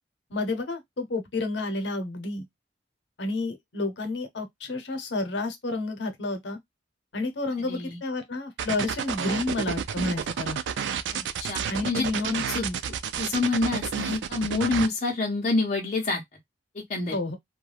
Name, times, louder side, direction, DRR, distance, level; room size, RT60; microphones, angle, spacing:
voice 1, 0.3-2.5 3.2-6.6 7.1-10.6 11.7-12.8 17.1-17.4, left 2 dB, 85° left, 0.7 m, -30 dB
voice 2, 7.6-8.0 11.1-12.7 13.2-16.2 16.7-17.2, left 3 dB, 40° left, 0.6 m, -28 dB
sound 1, 8.6-14.9, right 7 dB, 90° right, 0.3 m, -30 dB
2.3 x 2.2 x 3.2 m
head